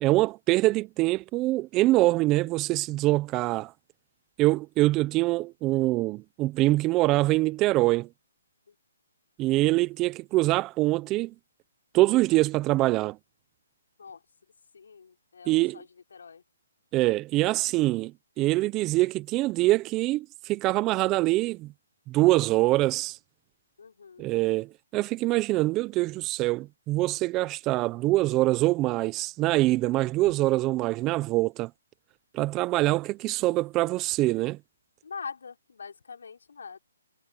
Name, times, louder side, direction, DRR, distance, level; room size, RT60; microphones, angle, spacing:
voice 1, 0.0-3.7 4.4-8.1 9.4-11.3 11.9-13.2 15.5-15.8 16.9-21.7 22.1-23.2 24.2-31.7 32.3-34.6, right 18 dB, 20° right, 0.8 m, -24 dB
voice 2, 14.7-16.4 23.8-24.3 33.4-33.6 35.0-36.8, left 5 dB, 70° left, 4.8 m, -44 dB
hypercardioid pair, 145°, 0 cm